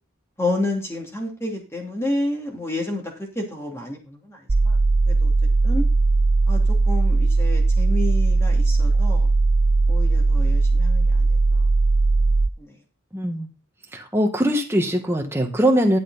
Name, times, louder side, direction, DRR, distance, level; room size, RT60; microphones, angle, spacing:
voice 1, 0.4-3.0 3.3-4.8 5.1-5.3 5.6-5.8 6.5-9.3 9.9-11.7 12.2-12.3 12.6-12.7, left 2 dB, 10° left, 2.6 m, -30 dB
sound 1, 4.5-12.5, right 3 dB, 25° right, 0.4 m, -18 dB
voice 2, 13.1-13.5 13.9-16.0, equal, 10° right, 1.6 m, -21 dB
11.5 x 7.7 x 4.1 m
head